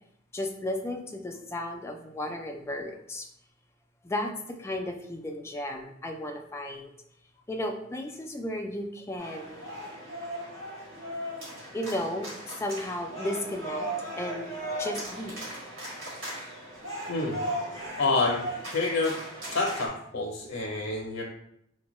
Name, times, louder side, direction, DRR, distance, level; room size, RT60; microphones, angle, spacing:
voice 1, 0.3-3.3 4.0-6.9 7.5-9.6 11.7-12.3 12.6-13.9 14.2-14.5 14.8-15.4, left 1 dB, 15° left, 2 dB, 0.3 m, -34 dB
sound 1, 9.2-19.9, right 1 dB, 80° right, 1.5 m, -37 dB
voice 2, 17.1-17.4 18.0-19.1 19.5-21.2, left 3 dB, 85° left, -2 dB, 0.6 m, -28 dB
4.4 x 2.2 x 3.0 m, 0.74 s
head